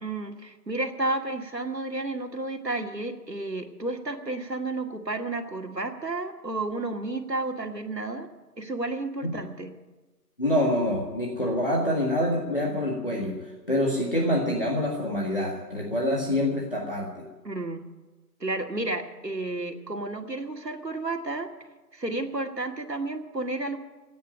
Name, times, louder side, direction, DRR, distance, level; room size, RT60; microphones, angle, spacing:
voice 1, 0.0-8.3 8.6-9.7 17.4-17.9 18.4-21.5 21.9-23.8, right 2 dB, 80° right, 4 dB, 2.3 m, -31 dB
voice 2, 10.4-13.4 13.7-17.1, left 1 dB, 35° left, -3 dB, 1.7 m, -26 dB
15.5 x 9.4 x 9.2 m, 1.2 s
figure-of-eight pair, 170°, 49 cm